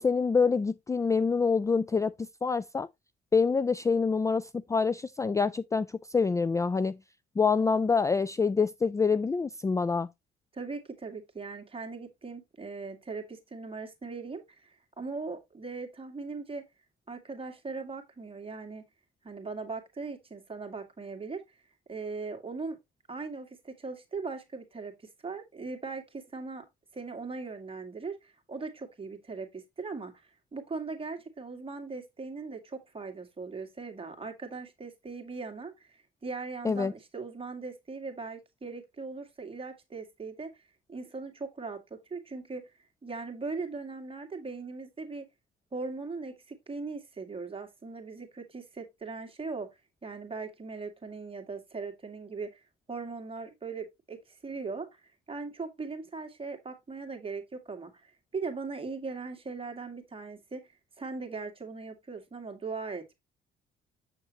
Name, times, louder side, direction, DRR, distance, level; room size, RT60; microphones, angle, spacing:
voice 1, 0.0-2.9 3.3-7.0 7.4-10.1 36.6-36.9, left 5 dB, 15° left, 0.3 m, -26 dB
voice 2, 10.5-16.6 17.1-18.8 19.2-21.4 21.9-22.8 23.1-24.9 25.2-26.7 26.9-30.1 30.5-40.5 40.9-42.7 43.0-45.3 45.7-52.6 52.9-60.7 61.0-63.1, right 4 dB, 30° right, 2.1 m, -39 dB
7.5 x 6.4 x 2.9 m
supercardioid pair, 75°, 20 cm